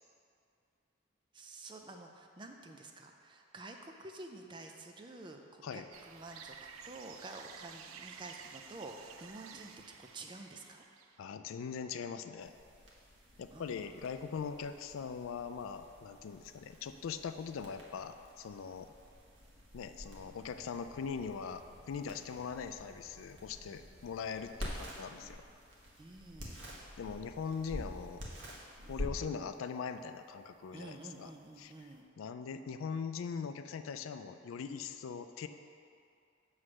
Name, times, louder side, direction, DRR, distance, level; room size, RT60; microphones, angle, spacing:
voice 1, 1.3-6.6 6.9-10.8 13.5-13.9 26.0-26.6 30.7-32.1, right 2 dB, 25° right, 3 dB, 0.4 m, -49 dB
sound 1, 5.9-11.2, right 6 dB, 90° right, 0.4 m, -52 dB
voice 2, 11.2-12.5 13.4-18.9 19.7-25.4 27.0-28.2 28.9-31.3 31.6-31.9 32.2-35.5, left 6 dB, 80° left, 9 dB, 0.3 m, -41 dB
sound 2, 12.4-32.0, equal, 60° right, 1.2 m, -49 dB
7.5 x 3.2 x 6.2 m, 2.5 s
head